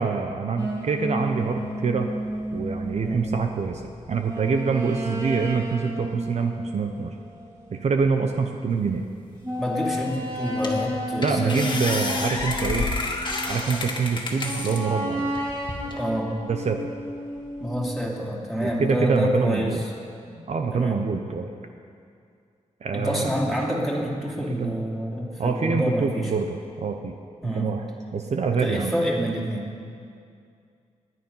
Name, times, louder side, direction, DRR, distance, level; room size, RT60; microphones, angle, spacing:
voice 1, 0.0-2.1 2.5-3.8 4.1-7.2 7.7-9.1 11.2-12.9 13.5-15.3 16.4-16.9 18.6-19.8 20.5-21.5 22.8-23.3 24.5-24.7 25.4-27.1 27.4-27.8 28.1-28.9, right 5 dB, 60° right, 5 dB, 0.8 m, -25 dB
sound 1, 0.6-8.3 8.7-8.8 9.4-13.8 14.4-17.9, equal, 30° right, 3.7 m, -32 dB
voice 2, 9.6-11.6 15.8-16.3 17.6-19.8 20.3-20.4 20.7-21.0 22.9-26.3 27.4-27.8 28.6-29.7, equal, ahead, -4 dB, 2.8 m, -27 dB
sound 2, 10.0-10.1 10.6-10.9 11.2-14.8 15.3-16.0, left 2 dB, 35° left, 2.0 m, -29 dB
20.5 x 9.5 x 5.6 m, 2.3 s
wide cardioid pair, 110°, 13 cm